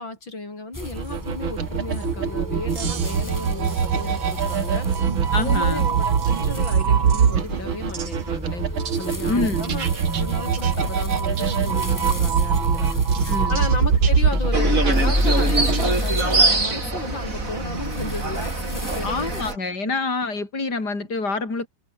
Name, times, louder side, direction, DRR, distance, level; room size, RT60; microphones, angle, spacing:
voice 1, 0.0-4.9 5.4-9.9 10.1-13.0 13.5-19.2 19.8-19.9, left 2 dB, 65° left, 7.0 m, -34 dB
sound 1, 0.7-19.5, left 1 dB, 10° left, 3.2 m, -30 dB
sound 2, 0.8-15.9, right 7 dB, 75° right, 2.9 m, -23 dB
voice 2, 5.3-5.9 9.3-9.7 13.3-13.6 19.0-21.7, left 3 dB, 50° left, 5.4 m, -26 dB
sound 3, 14.5-19.6, right 3 dB, 40° right, 4.4 m, -24 dB
omnidirectional pair, 2.2 m